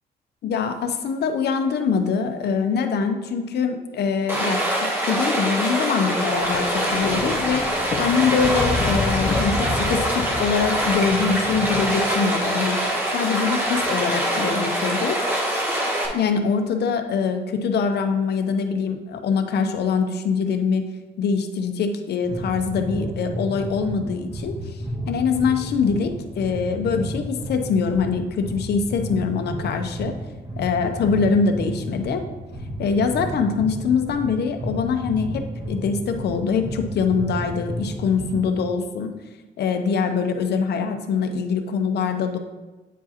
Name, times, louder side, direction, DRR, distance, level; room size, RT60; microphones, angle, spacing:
voice 1, 0.4-12.8 13.1-15.6 16.1-20.8 21.2-30.2 30.6-32.2 32.8-39.1 39.6-42.4, left 5 dB, 75° left, 6 dB, 0.7 m, -23 dB
Stream, 4.3-16.1, right 1 dB, 10° right, 1.0 m, -24 dB
Thunder, 6.3-12.7 13.7-13.9, left 4 dB, 35° left, 0.4 m, -30 dB
sound 1, 22.2-38.6, equal, 30° right, 1.3 m, -32 dB
9.0 x 4.7 x 2.9 m, 1.2 s
wide cardioid pair, 165°, 17 cm